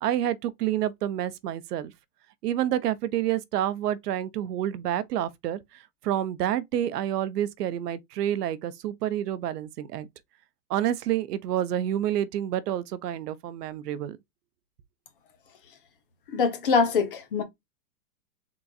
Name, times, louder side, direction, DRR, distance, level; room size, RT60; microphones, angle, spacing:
voice 1, 0.0-1.9 2.4-10.1 10.7-14.2, right 11 dB, 75° right, 0.6 m, -28 dB
voice 2, 16.3-17.4, left 5 dB, 35° left, 0.6 m, -23 dB
3.8 x 2.5 x 2.2 m
supercardioid pair, 170°, 47 cm